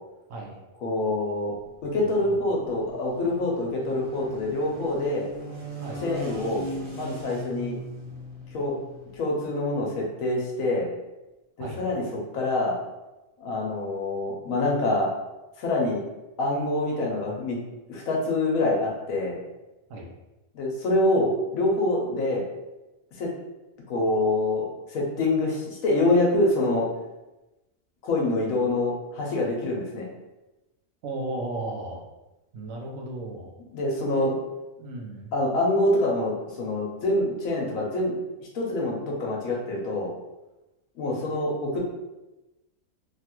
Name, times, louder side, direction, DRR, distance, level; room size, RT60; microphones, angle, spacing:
voice 1, 0.8-1.5 1.8-5.3 6.0-6.6 6.9-7.8 8.5-8.8 9.2-10.9 11.6-12.8 13.4-15.1 15.6-16.0 16.4-17.6 17.9-19.4 20.5-22.4 23.2-23.3 23.9-26.9 28.0-30.1 33.7-34.4 35.3-38.1 38.5-40.1 41.0-41.8, left 2 dB, 75° left, -2 dB, 1.1 m, -25 dB
sound 1, 1.5-9.2, equal, 30° right, 0.6 m, -40 dB
voice 2, 31.0-32.0 32.5-33.5 34.1-34.3 34.8-35.3, right 2 dB, 70° right, -1 dB, 1.0 m, -35 dB
3.2 x 2.3 x 2.9 m, 1.0 s
omnidirectional pair, 1.5 m